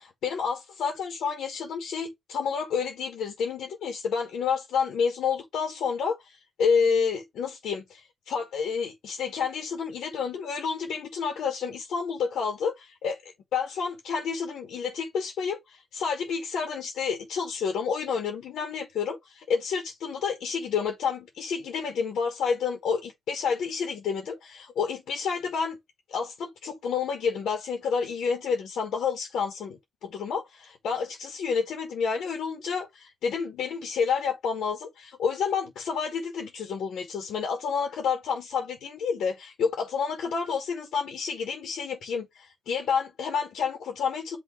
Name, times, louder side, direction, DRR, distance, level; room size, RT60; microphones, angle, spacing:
voice 1, 0.2-25.8 26.1-44.4, left 6 dB, 75° left, 1.6 m, -29 dB
6.2 x 3.0 x 5.0 m
cardioid pair, 90°, 0 cm